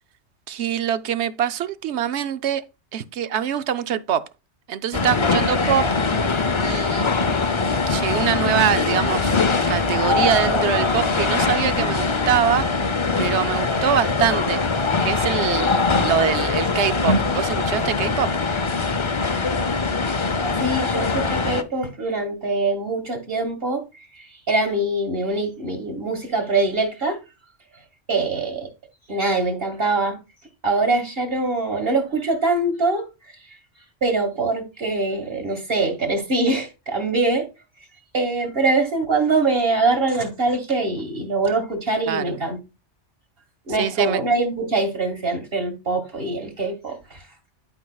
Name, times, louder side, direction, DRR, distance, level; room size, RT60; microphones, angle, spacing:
voice 1, 0.5-2.6 2.9-4.2 4.7-5.9 6.6-7.1 7.7-9.4 9.7-12.7 13.2-14.6 15.0-18.3 42.1-42.3 43.8-44.2, right 9 dB, 70° right, 0.9 m, -24 dB
sound 1, 4.9-21.6, left 4 dB, 35° left, 0.6 m, -22 dB
voice 2, 20.5-23.8 24.2-27.2 28.1-28.7 29.1-30.2 30.6-33.0 34.0-37.5 38.1-42.6 43.7-47.2, right 3 dB, 50° right, 2.2 m, -23 dB
11.5 x 5.3 x 2.3 m
omnidirectional pair, 1.2 m